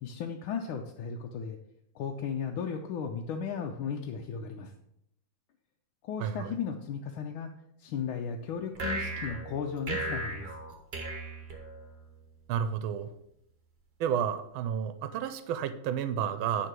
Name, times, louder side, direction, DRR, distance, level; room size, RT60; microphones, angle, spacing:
voice 1, 0.0-1.6 1.9-4.7 6.0-7.5 7.8-10.5, left 6 dB, 90° left, 2 dB, 1.5 m, -35 dB
voice 2, 6.2-6.5 12.5-13.1 14.0-16.7, right 8 dB, 85° right, 11 dB, 1.4 m, -31 dB
sound 1, 8.7-12.2, right 2 dB, 35° right, 1.3 m, -36 dB
9.4 x 3.8 x 6.0 m, 0.77 s
omnidirectional pair, 2.2 m